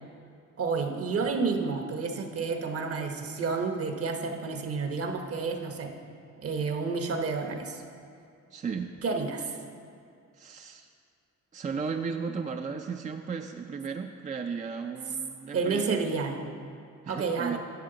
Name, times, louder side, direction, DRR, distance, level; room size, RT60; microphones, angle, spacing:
voice 1, 0.6-5.9 6.4-7.8 9.0-9.6 15.5-16.4 17.1-17.6, right 4 dB, 50° right, 4 dB, 1.0 m, -30 dB
voice 2, 8.5-8.9 10.4-10.9 11.5-16.0 17.0-17.6, right 5 dB, 25° right, 5 dB, 0.4 m, -35 dB
11.0 x 7.3 x 3.9 m, 2.4 s
cardioid pair, 90°, 30 cm